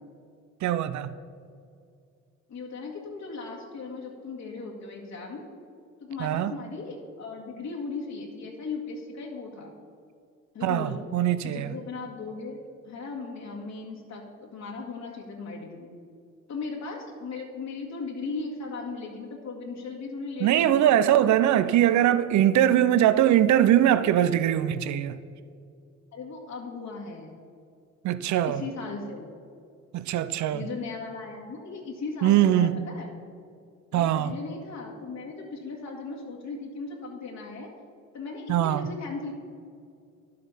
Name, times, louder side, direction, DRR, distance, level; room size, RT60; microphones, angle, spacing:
voice 1, 0.6-1.1 6.2-6.5 10.6-11.7 20.4-25.2 28.0-28.6 29.9-30.7 32.2-32.7 33.9-34.3 38.5-38.8, right 11 dB, 70° right, 0.6 m, -22 dB
voice 2, 2.5-5.5 6.0-9.7 10.5-11.0 11.4-12.6 12.9-15.9 16.5-21.3 26.1-27.3 28.5-29.3 30.5-33.1 33.9-37.7 38.1-39.3, left 4 dB, 65° left, 1.9 m, -37 dB
11.0 x 7.7 x 5.6 m
cardioid pair, 90°, 30 cm